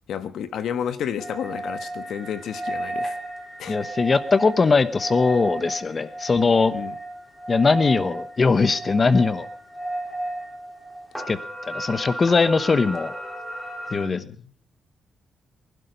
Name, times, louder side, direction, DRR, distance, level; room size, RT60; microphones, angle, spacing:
voice 1, 0.1-3.2 3.6-3.8 6.7-6.9 13.9-14.5, left 8 dB, 80° left, 12 dB, 1.3 m, -31 dB
sound 1, 1.2-14.1, right 1 dB, 10° left, 3.3 m, -34 dB
voice 2, 3.7-6.7 7.5-9.5 11.3-11.4 11.7-13.1 13.9-14.2, left 4 dB, 30° left, 15 dB, 1.0 m, -20 dB
20.0 x 11.5 x 5.2 m, 0.43 s
cardioid pair, 130°, 0 cm